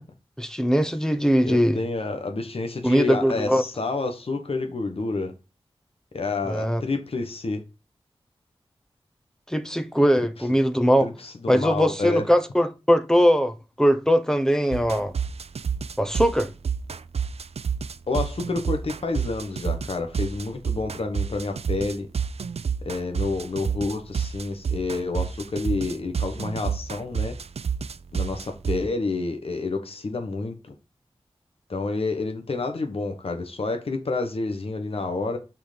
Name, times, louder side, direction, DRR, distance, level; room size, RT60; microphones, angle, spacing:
voice 1, 0.4-1.8 2.8-3.6 6.5-6.8 9.5-11.1 11.5-15.1 16.0-16.5, equal, 5° left, 0.9 m, -21 dB
voice 2, 1.4-5.3 6.1-7.6 10.2-10.3 11.0-12.2 18.1-22.1 22.8-27.4 28.1-30.7 31.7-35.4, left 3 dB, 65° left, 1.2 m, -29 dB
sound 1, 14.7-28.8, right 6 dB, 80° right, 0.5 m, -28 dB
6.0 x 4.5 x 5.1 m
wide cardioid pair, 70°, 10 cm